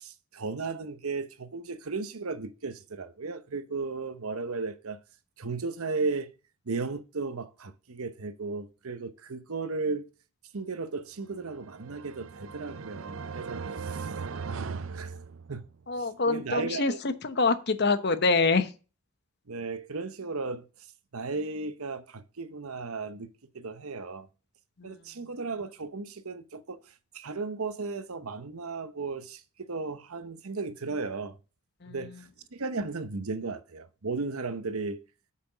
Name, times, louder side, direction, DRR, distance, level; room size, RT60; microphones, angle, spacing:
voice 1, 0.0-5.0 5.4-6.3 6.7-10.1 10.5-14.1 14.4-15.2 15.5-15.6 16.0-17.0 19.5-20.6 21.1-23.3 23.5-24.3 24.8-31.4 31.9-35.0, right 4 dB, 75° right, 0.9 m, -35 dB
sound 1, 11.4-15.8, right 5 dB, 60° right, 0.5 m, -38 dB
voice 2, 15.9-18.7 24.8-25.0 31.8-31.9, left 3 dB, 50° left, 0.9 m, -26 dB
8.5 x 5.9 x 6.1 m
head